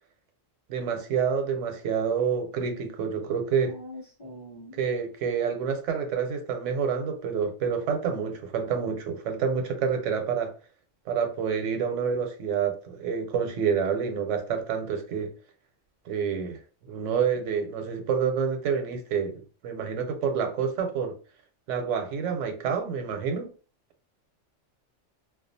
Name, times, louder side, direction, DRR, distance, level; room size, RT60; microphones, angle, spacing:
voice 1, 0.7-3.8 4.7-10.5 11.1-15.3 16.1-21.2 21.7-23.5, right 6 dB, 80° right, 0.9 m, -28 dB
voice 2, 3.6-4.8, left 1 dB, 30° left, 0.5 m, -43 dB
2.4 x 2.3 x 2.6 m
omnidirectional pair, 1.3 m